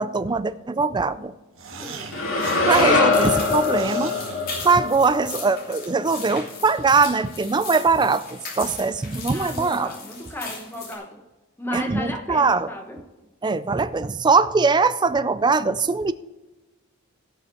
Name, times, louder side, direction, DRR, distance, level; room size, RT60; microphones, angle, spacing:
voice 1, 0.0-1.3 2.7-4.1 4.6-9.9 11.7-12.7 13.4-16.1, right 4 dB, 20° right, 14 dB, 0.4 m, -21 dB
sound 1, 1.6-5.3, right 3 dB, 70° right, 1.5 m, -37 dB
voice 2, 1.7-2.1 9.3-11.2 11.6-13.0, left 1 dB, 10° left, 3 dB, 1.1 m, -34 dB
sound 2, 2.1-6.3, left 3 dB, 65° left, 3.2 m, -23 dB
sound 3, 3.1-10.9, left 4 dB, 45° left, 2.8 m, -38 dB
16.5 x 5.6 x 4.5 m, 1.1 s
head